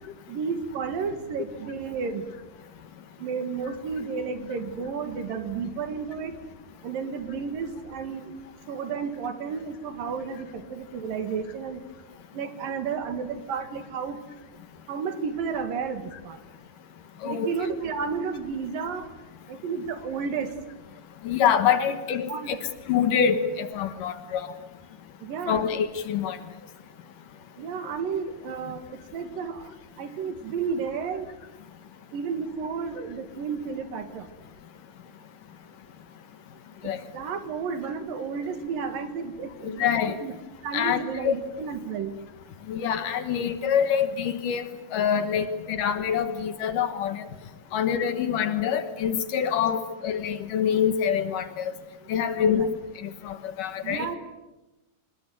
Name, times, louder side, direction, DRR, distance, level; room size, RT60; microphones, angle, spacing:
voice 1, 0.3-2.2 3.2-6.3 6.8-8.3 8.7-11.8 12.3-14.2 14.9-16.4 17.2-19.1 19.5-20.5 21.7-21.8 22.3-22.6 25.2-25.6 27.6-29.7 30.0-31.3 32.1-34.3 37.1-39.9 40.2-40.3 40.6-42.1 52.4-52.7 53.8-54.2, right 5 dB, 65° right, 9 dB, 3.5 m, -32 dB
voice 2, 17.2-17.5 21.2-24.5 25.5-26.4 36.8-37.0 39.6-40.2 40.7-41.4 42.7-44.7 44.9-47.3 47.7-51.7 52.1-52.8 53.0-54.1, left 8 dB, 65° left, 11 dB, 2.6 m, -25 dB
25.0 x 21.5 x 9.4 m, 1.0 s
omnidirectional pair, 4.4 m